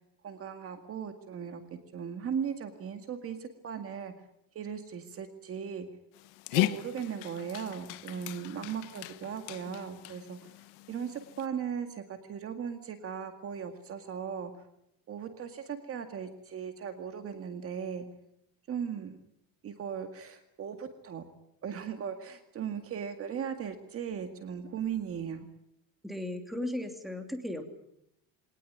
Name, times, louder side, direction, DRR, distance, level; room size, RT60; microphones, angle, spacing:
voice 1, 0.2-4.1 4.5-5.9 6.5-10.5 10.9-14.6 15.1-18.1 18.7-19.2 19.6-21.2 21.6-25.5, right 7 dB, 35° right, 7 dB, 2.0 m, -38 dB
Dog, 6.1-11.5, left 18 dB, 90° left, 1.3 m, -37 dB
voice 2, 26.0-27.6, left 1 dB, ahead, 5 dB, 2.7 m, -36 dB
23.0 x 19.0 x 9.2 m, 0.80 s
cardioid pair, 155°, 39 cm